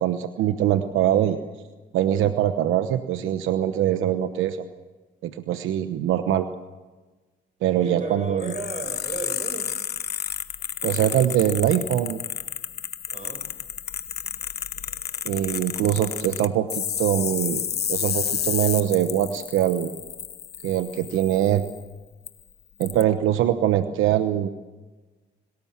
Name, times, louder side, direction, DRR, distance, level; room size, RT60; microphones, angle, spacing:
voice 1, 0.0-1.4 1.9-4.6 5.2-6.5 7.6-8.5 10.8-12.2 15.2-17.6 17.9-19.9 20.6-21.7 22.8-24.5, right 11 dB, 85° right, 9 dB, 1.0 m, -23 dB
voice 2, 7.8-9.7 13.1-13.5, right 3 dB, 40° right, 7 dB, 6.1 m, -34 dB
sound 1, 8.4-21.8 22.3-22.4 22.8-23.0, left 9 dB, 55° left, 1.1 m, -31 dB
26.5 x 18.5 x 7.4 m, 1.2 s
cardioid pair, 90°, 20 cm